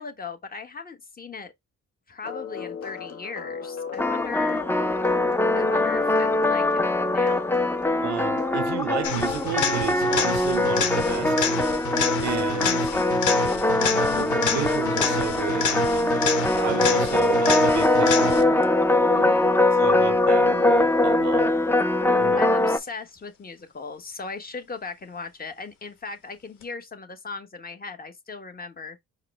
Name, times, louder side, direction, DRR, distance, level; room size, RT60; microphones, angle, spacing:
voice 1, 0.0-1.5 2.1-4.6 5.5-7.5 12.9-13.4 19.1-19.5 22.3-29.0, left 4 dB, 30° left, 1.2 m, -38 dB
sound 1, 2.2-18.5, left 6 dB, 55° left, 1.0 m, -38 dB
sound 2, 4.0-22.8, left 2 dB, 10° left, 0.6 m, -22 dB
voice 2, 8.0-11.5 12.2-12.9 14.1-16.2 16.4-18.6 19.8-21.6 22.1-22.5, right 12 dB, 65° right, 0.6 m, -33 dB
sound 3, 9.0-18.6 26.6-26.7, left 5 dB, 75° left, 1.2 m, -28 dB
4.8 x 2.1 x 4.6 m
cardioid pair, 90°, 30 cm